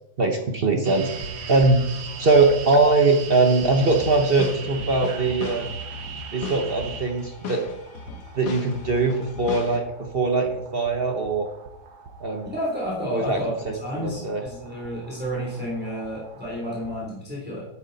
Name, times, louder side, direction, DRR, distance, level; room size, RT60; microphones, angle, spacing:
voice 1, 0.2-1.1 1.5-1.8 2.2-5.7 6.3-7.6 8.3-9.9 10.1-11.5 12.2-12.5 13.1-13.4 13.6-14.4, right 3 dB, 40° right, 4 dB, 0.9 m, -21 dB
sound 1, 0.8-16.9, right 4 dB, 80° right, 1.8 m, -39 dB
sound 2, 3.6-9.8, left 5 dB, 55° left, 1.3 m, -38 dB
voice 2, 12.4-17.6, equal, 5° right, -5 dB, 3.3 m, -31 dB
10.5 x 8.8 x 4.1 m, 0.85 s
omnidirectional pair, 2.0 m